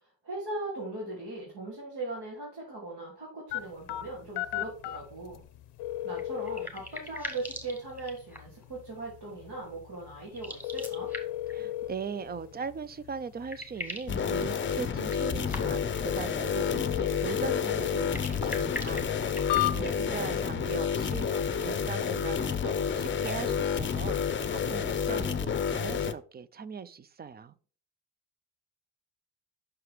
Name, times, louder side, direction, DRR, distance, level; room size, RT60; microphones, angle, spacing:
voice 1, 0.0-5.4 6.0-11.1 20.1-20.5, right 2 dB, 65° right, 3.0 m, -39 dB
sound 1, 3.5-20.2, left 14 dB, 75° left, 0.6 m, -37 dB
sound 2, 6.1-8.6 10.3-11.5 12.9-13.0 13.2-14.2 15.0-16.0 17.9-20.1, left 1 dB, 5° right, 1.9 m, -41 dB
voice 2, 11.5-24.2 24.5-27.5, right 6 dB, 25° right, 0.4 m, -39 dB
sound 3, 14.1-26.1, left 7 dB, 30° left, 0.6 m, -30 dB
5.9 x 4.8 x 4.9 m
cardioid pair, 95°, 41 cm